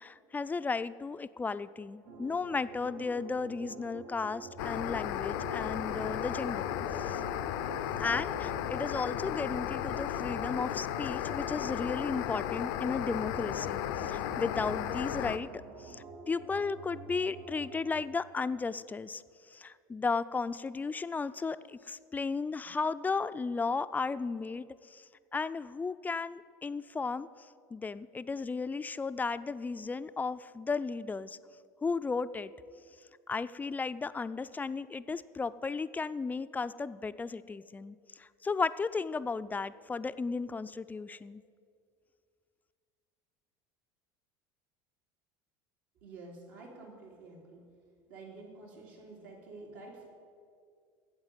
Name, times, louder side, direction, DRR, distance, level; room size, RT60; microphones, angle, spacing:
voice 1, 0.0-7.2 8.0-19.2 19.5-25.0 25.3-27.3 27.7-31.4 31.8-32.5 33.3-41.4, left 4 dB, 15° left, 14 dB, 0.3 m, -35 dB
sound 1, 2.1-18.0, right 4 dB, 65° right, 1.1 m, -48 dB
sound 2, 4.6-15.4, left 11 dB, 80° left, 0.6 m, -35 dB
voice 2, 46.0-47.7 48.1-50.1, right 3 dB, 80° right, -1 dB, 3.0 m, -49 dB
9.0 x 7.7 x 8.9 m, 2.2 s
supercardioid pair, 100°, 11 cm